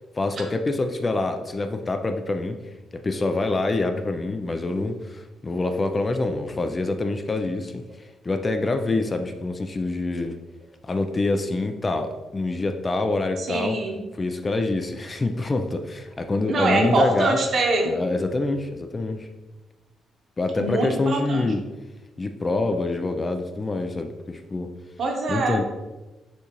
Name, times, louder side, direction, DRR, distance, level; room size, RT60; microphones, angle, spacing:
voice 1, 0.2-2.6 2.9-10.4 10.8-13.8 14.1-17.4 17.9-19.3 20.4-21.6 22.2-24.7 25.3-25.6, left 2 dB, 25° left, 6 dB, 0.3 m, -26 dB
voice 2, 13.4-14.0 16.5-17.9 20.6-21.4 25.0-25.6, right 2 dB, 50° right, 2 dB, 0.9 m, -24 dB
6.6 x 2.4 x 2.9 m, 1.1 s
cardioid pair, 105°, 0 cm